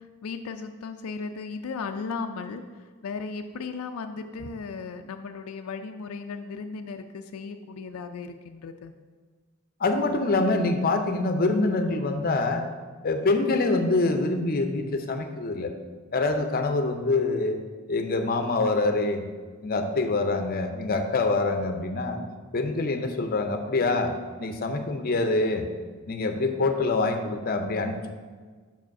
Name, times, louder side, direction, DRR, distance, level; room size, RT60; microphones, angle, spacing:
voice 1, 0.0-8.9, left 4 dB, 85° left, 7 dB, 0.4 m, -36 dB
voice 2, 9.8-12.6 13.0-15.7 16.1-17.6 17.9-19.2 19.6-22.2 22.5-24.1 24.4-25.7 26.1-28.1, left 3 dB, 45° left, 6 dB, 0.6 m, -25 dB
5.6 x 4.9 x 5.8 m, 1.5 s
head